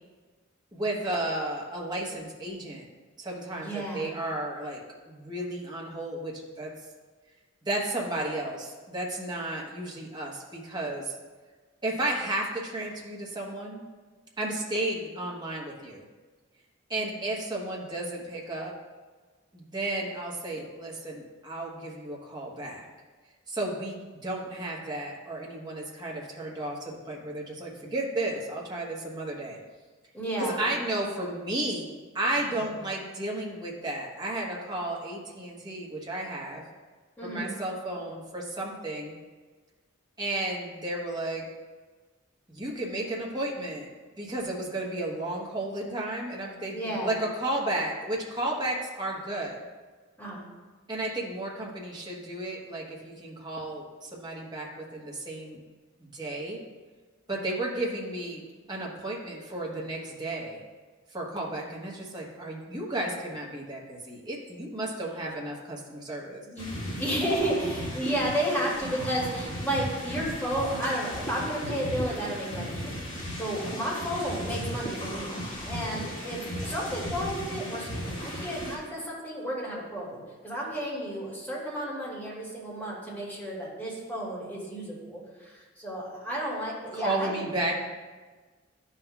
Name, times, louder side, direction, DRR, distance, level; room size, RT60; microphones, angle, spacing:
voice 1, 0.7-2.8 3.2-6.7 7.6-11.2 11.8-13.8 14.4-16.0 16.9-18.7 19.5-22.9 23.5-29.6 30.4-36.6 37.2-39.1 40.2-41.5 42.5-43.9 44.2-49.6 50.9-55.6 56.0-56.6 57.3-58.4 58.7-60.7 61.1-66.4 86.9-87.9, right 1 dB, 20° right, -3 dB, 1.2 m, -33 dB
voice 2, 3.6-4.1 17.0-17.2 30.1-30.7 37.2-37.5 46.7-47.2 50.2-50.4 66.4-66.7 67.0-87.4, right 1 dB, 10° left, -6 dB, 2.3 m, -32 dB
sound 1, 66.6-78.8, equal, 40° left, 1.8 m, -36 dB
11.5 x 5.7 x 2.3 m, 1.4 s
head